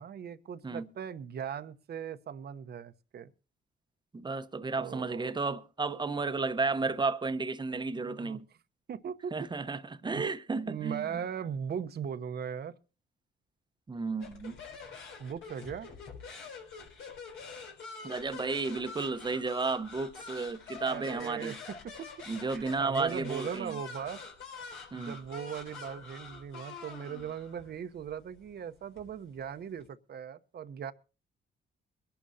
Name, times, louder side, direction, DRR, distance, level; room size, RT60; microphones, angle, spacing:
voice 1, 0.0-3.3 4.8-5.3 8.0-8.4 8.9-9.3 10.1-10.3 10.7-12.7 15.2-15.9 20.8-22.1 22.5-24.2 24.9-30.9, right 8 dB, 55° right, 1.0 m, -39 dB
voice 2, 4.1-8.4 9.3-11.2 13.9-14.5 18.0-21.6 22.3-23.8 24.9-25.2, right 4 dB, 20° right, 0.9 m, -33 dB
sound 1, 14.2-29.8, left 5 dB, 80° left, 3.9 m, -46 dB
23.0 x 11.5 x 2.8 m
cardioid pair, 90°, 20 cm